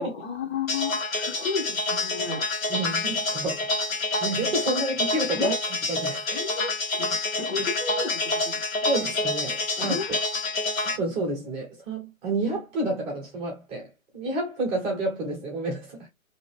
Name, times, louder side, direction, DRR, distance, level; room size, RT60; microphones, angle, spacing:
voice 1, 0.0-2.5 5.3-5.6 6.3-8.9 9.8-10.2, left 5 dB, 50° left, 0.9 m, -33 dB
sound 1, 0.7-11.0, left 2 dB, 75° left, 1.2 m, -28 dB
voice 2, 2.7-3.9 4.2-5.5 5.9-6.4 8.8-10.0 10.8-16.1, right 2 dB, 15° right, 0.8 m, -30 dB
2.8 x 2.3 x 3.2 m
figure-of-eight pair, 140°, 41 cm